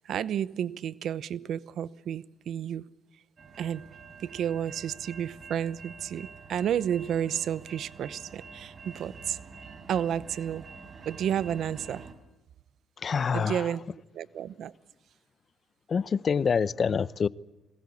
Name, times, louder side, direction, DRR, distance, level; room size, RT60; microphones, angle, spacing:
voice 1, 0.0-2.8 3.6-3.8 4.2-9.4 9.9-10.6 11.1-12.0 13.3-13.8 14.1-14.7, right 9 dB, 70° right, 0.9 m, -31 dB
sound 1, 3.4-12.1, right 5 dB, 45° right, 4.4 m, -47 dB
voice 2, 13.0-13.7 15.9-17.3, left 6 dB, 45° left, 0.7 m, -26 dB
22.0 x 20.0 x 8.4 m
cardioid pair, 90°, 0 cm